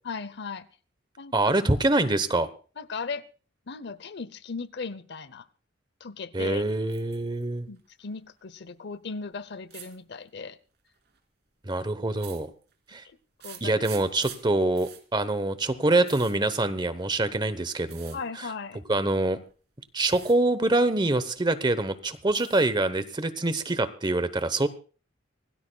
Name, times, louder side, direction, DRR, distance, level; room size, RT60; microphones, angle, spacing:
voice 1, 0.0-0.7 1.2-1.5 2.8-3.2 3.7-5.5 6.0-6.6 7.7-10.6 13.4-13.8 18.1-18.8, left 4 dB, 60° left, 17 dB, 0.7 m, -37 dB
voice 2, 1.3-2.5 6.3-7.7 11.7-12.5 12.9-13.0 13.6-18.2 18.9-19.4 19.9-24.7, right 2 dB, 25° right, 13 dB, 0.9 m, -25 dB
sound 1, 6.9-7.4 7.8-8.4 9.7-10.0 10.9-11.2 12.1-12.9 13.4-17.2 17.9-18.2 19.1-19.5 19.9-20.4 20.7-21.5 21.9-22.8 23.2-23.9, right 11 dB, 60° right, 2.9 m, -47 dB
26.0 x 17.0 x 2.3 m, 0.39 s
head